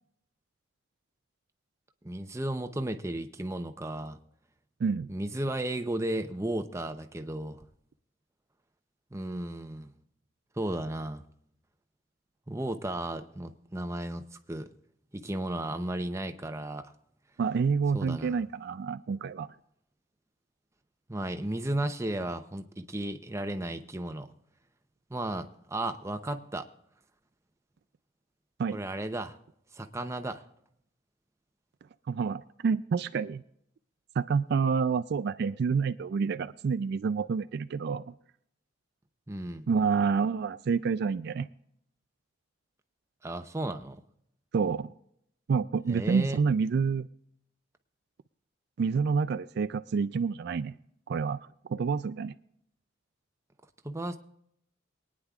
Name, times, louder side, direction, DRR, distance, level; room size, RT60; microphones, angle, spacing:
voice 1, 2.0-4.2 5.1-7.6 9.1-9.9 10.6-11.2 12.5-14.7 15.1-16.9 17.9-18.4 21.1-24.3 25.1-26.7 28.7-29.4 29.7-30.4 39.3-39.7 43.2-44.0 45.9-46.4 53.8-54.2, right 1 dB, 15° right, 8 dB, 0.7 m, -34 dB
voice 2, 17.4-19.5 28.6-28.8 32.1-33.4 34.2-38.1 39.7-41.5 44.5-44.9 45.5-47.1 48.8-50.8 51.1-51.4 51.7-52.3, right 5 dB, 55° right, 12 dB, 0.3 m, -28 dB
23.5 x 9.7 x 2.4 m, 0.73 s
head